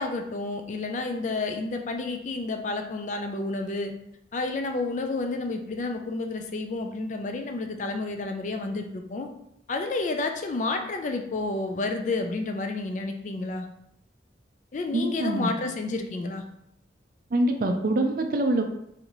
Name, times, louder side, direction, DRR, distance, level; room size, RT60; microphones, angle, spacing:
voice 1, 0.0-3.9 4.3-9.3 9.7-13.7 14.7-16.4, left 3 dB, 40° left, 5 dB, 0.3 m, -30 dB
voice 2, 14.9-15.5 17.3-18.6, right 2 dB, 50° right, 4 dB, 0.4 m, -24 dB
4.0 x 2.6 x 2.9 m, 0.77 s
head